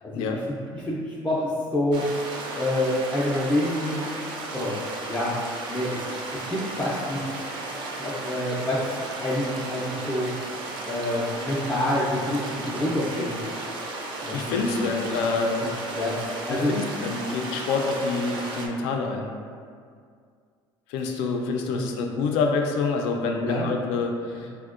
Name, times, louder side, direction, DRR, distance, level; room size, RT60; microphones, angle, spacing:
voice 1, 0.0-2.1 2.5-4.0 4.5-4.8 5.1-5.3 5.7-7.2 8.0-8.9 9.1-10.3 10.8-13.4 14.2-14.6 15.2-15.3 15.6-16.7 21.7-21.8 23.4-23.7 24.4-24.5, left 1 dB, 10° left, -8 dB, 0.3 m, -27 dB
sound 1, 1.9-18.7, right 2 dB, 55° right, 0.4 m, -34 dB
voice 2, 14.3-15.6 16.5-19.3 20.9-24.5, left 4 dB, 85° left, 3 dB, 0.4 m, -27 dB
4.3 x 2.1 x 2.4 m, 2.1 s
cardioid pair, 140°, 10 cm